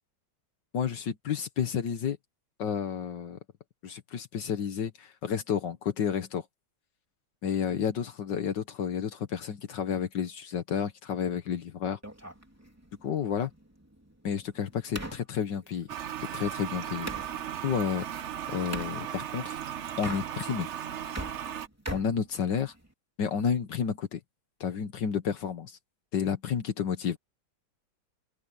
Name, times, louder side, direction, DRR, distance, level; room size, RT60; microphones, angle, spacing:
voice 1, 0.7-2.2 2.6-3.4 3.8-6.5 7.4-12.0 13.0-13.5 14.2-15.9 16.3-17.1 17.6-18.1 18.5-19.6 20.0-20.7 21.9-22.7 23.2-24.2 24.6-25.8 26.1-27.2, left 7 dB, 75° left, 1.9 m, -31 dB
sound 1, 12.0-17.3 18.7-19.0 19.9-20.7 21.0-22.9, right 1 dB, 10° right, 3.2 m, -42 dB
Toilet flush, 15.9-21.7, right 10 dB, 55° right, 0.8 m, -36 dB
open air
omnidirectional pair, 1.9 m